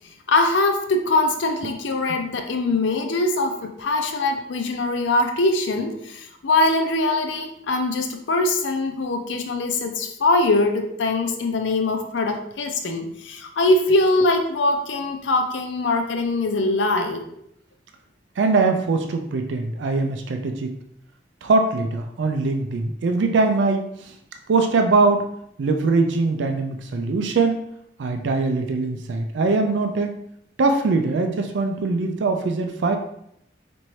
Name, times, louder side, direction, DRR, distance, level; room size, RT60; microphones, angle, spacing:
voice 1, 0.3-17.2, left 2 dB, 90° left, 5 dB, 0.5 m, -22 dB
voice 2, 18.4-20.7 21.4-24.1 24.5-25.3 25.6-27.6 28.0-30.1 30.6-33.0, right 3 dB, 85° right, 5 dB, 0.4 m, -22 dB
4.3 x 2.6 x 3.1 m, 0.74 s
head